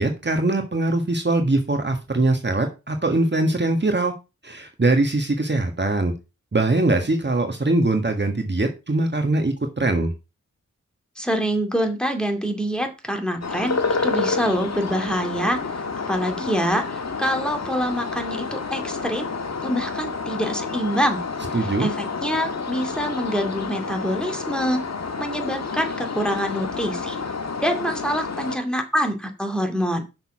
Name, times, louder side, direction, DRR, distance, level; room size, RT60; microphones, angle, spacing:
voice 1, 0.0-4.1 4.4-6.1 6.5-10.1 21.5-21.9, right 2 dB, 35° right, 4 dB, 1.6 m, -22 dB
voice 2, 11.2-15.6 16.1-19.3 19.6-21.2 21.8-24.8 25.2-27.2 27.6-30.0, equal, 5° left, 4 dB, 2.3 m, -25 dB
sound 1, 13.4-28.6, left 4 dB, 55° left, 1.6 m, -29 dB
6.6 x 6.5 x 6.0 m, 0.28 s
wide cardioid pair, 65°, 31 cm